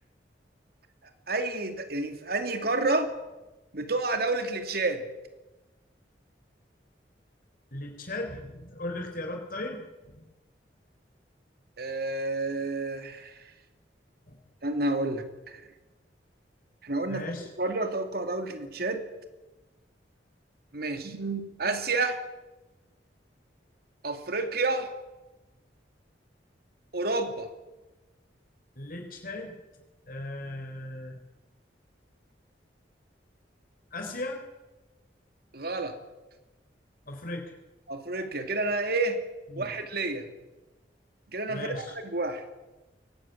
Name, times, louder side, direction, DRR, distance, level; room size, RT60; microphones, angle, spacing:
voice 1, 1.3-3.1 3.7-5.0 11.8-13.4 14.6-15.6 16.8-17.2 17.6-19.0 20.7-22.2 24.0-24.9 26.9-27.5 35.5-36.0 37.9-39.2 39.6-40.3 41.3-42.4, right 2 dB, 60° right, 7 dB, 2.5 m, -30 dB
voice 2, 7.7-10.3 14.3-14.4 17.1-17.5 28.8-29.6 30.1-31.2 33.9-34.4 37.1-37.4 39.5-39.7 41.5-41.9, left 2 dB, 55° left, 3 dB, 3.8 m, -37 dB
22.5 x 18.0 x 9.1 m, 1.1 s
head